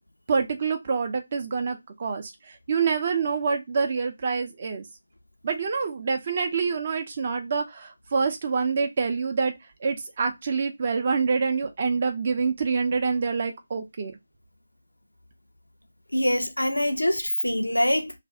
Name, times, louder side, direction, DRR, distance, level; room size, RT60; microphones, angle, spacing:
voice 1, 0.3-2.3 2.7-4.8 5.4-9.5 9.8-14.1, right 5 dB, 35° right, 0.6 m, -26 dB
voice 2, 16.1-18.1, left 1 dB, 80° left, 0.6 m, -24 dB
2.5 x 2.4 x 3.4 m
figure-of-eight pair, 155°, 0 cm